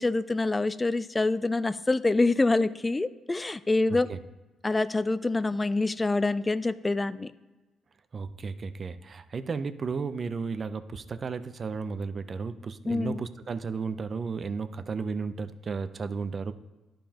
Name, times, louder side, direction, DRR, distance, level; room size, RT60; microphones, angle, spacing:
voice 1, 0.0-4.1 4.6-7.3 12.9-13.2, left 2 dB, 25° left, 12 dB, 0.4 m, -26 dB
voice 2, 8.1-16.5, right 5 dB, 45° right, 12 dB, 0.5 m, -34 dB
11.5 x 5.1 x 2.9 m, 1.2 s
supercardioid pair, 55°, 0 cm